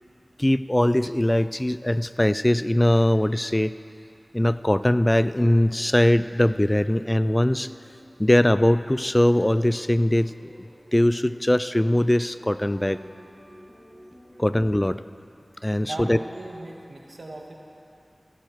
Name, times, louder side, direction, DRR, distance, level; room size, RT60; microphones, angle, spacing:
voice 1, 0.4-3.7 4.3-7.7 8.2-10.5 10.9-13.0 14.4-15.0 15.6-16.2, left 1 dB, 20° left, 14 dB, 0.3 m, -21 dB
sound 1, 5.1-14.6, equal, 5° left, 3.6 m, -49 dB
voice 2, 15.8-17.5, right 2 dB, 80° right, 0 dB, 1.6 m, -38 dB
16.0 x 12.0 x 4.6 m, 2.6 s
wide cardioid pair, 40°, 0 cm